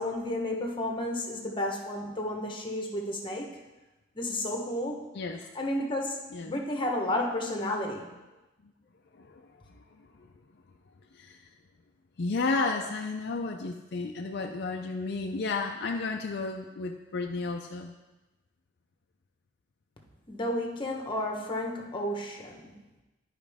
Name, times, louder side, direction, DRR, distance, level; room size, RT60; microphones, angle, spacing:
voice 1, 0.0-3.5 4.1-5.1 5.5-8.1 20.3-22.7, left 1 dB, 25° left, 1 dB, 1.1 m, -32 dB
voice 2, 5.1-5.4 6.3-6.5 9.1-9.4 9.7-9.8 10.2-10.3 11.1-11.4 12.2-17.9, left 3 dB, 60° left, 2 dB, 0.5 m, -32 dB
12.0 x 5.0 x 3.5 m, 1.1 s
head